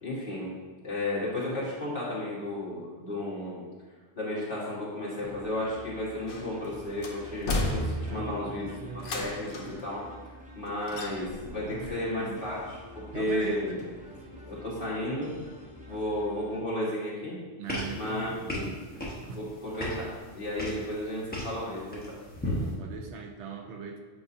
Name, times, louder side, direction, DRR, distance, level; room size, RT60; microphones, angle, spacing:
voice 1, 0.0-0.5 0.8-3.6 4.2-13.8 14.5-15.3 15.9-17.4 17.9-18.7 19.3-22.1 22.4-22.6, left 1 dB, 50° left, -7 dB, 2.0 m, -33 dB
sound 1, 5.2-16.6, left 1 dB, 10° right, 0.6 m, -48 dB
sound 2, 6.3-6.7 7.0-8.4 9.0-9.8 10.9-11.5 11.8-11.9, left 1 dB, 85° left, 1.1 m, -32 dB
voice 2, 8.1-9.3 11.5-12.5 13.1-14.6 15.9-16.0 17.6-18.9 19.3-19.5 22.5-24.0, right 5 dB, 80° right, 4 dB, 1.0 m, -41 dB
sound 3, 17.7-22.7, left 1 dB, 10° left, 1.1 m, -37 dB
8.1 x 4.8 x 2.7 m, 1.4 s
omnidirectional pair, 1.2 m